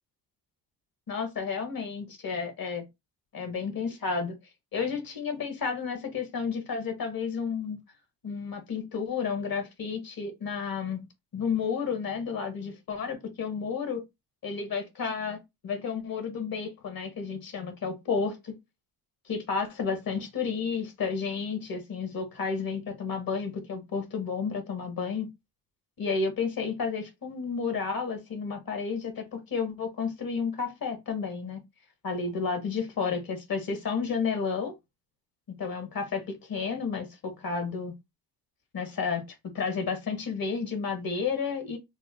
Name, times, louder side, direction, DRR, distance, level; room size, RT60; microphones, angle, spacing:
voice 1, 1.1-2.9 3.3-4.4 4.7-7.8 8.2-11.0 11.3-14.0 14.4-18.5 19.3-25.3 26.0-31.6 32.0-34.7 35.5-37.9 38.7-39.2 39.5-41.8, left 5 dB, 50° left, 1.5 m, -31 dB
3.2 x 2.2 x 3.6 m
supercardioid pair, 60°, 45 cm